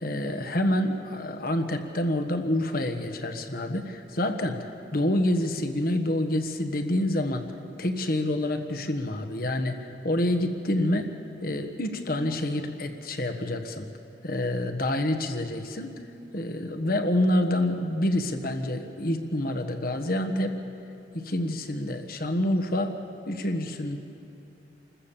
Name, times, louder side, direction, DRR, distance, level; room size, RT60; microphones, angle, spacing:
voice 1, 0.0-7.5 7.8-11.1 11.4-13.9 14.2-16.0 16.3-20.6 21.1-23.0 23.3-24.0, left 1 dB, 55° left, 6 dB, 1.4 m, -27 dB
27.5 x 14.5 x 7.3 m, 2.7 s
head